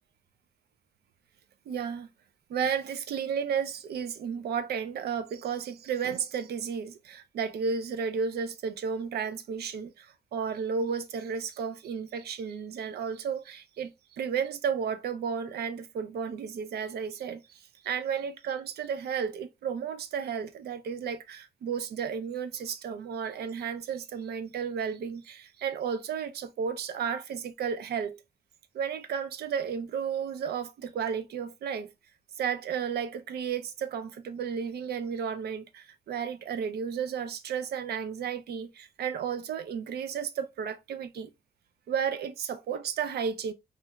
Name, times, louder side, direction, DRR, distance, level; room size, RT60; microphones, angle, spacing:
voice 1, 1.7-2.1 2.5-28.2 28.7-31.9 32.4-41.3 41.9-43.5, right 7 dB, 75° right, 0.4 m, -33 dB
3.2 x 2.8 x 2.2 m
wide cardioid pair, 145°, 17 cm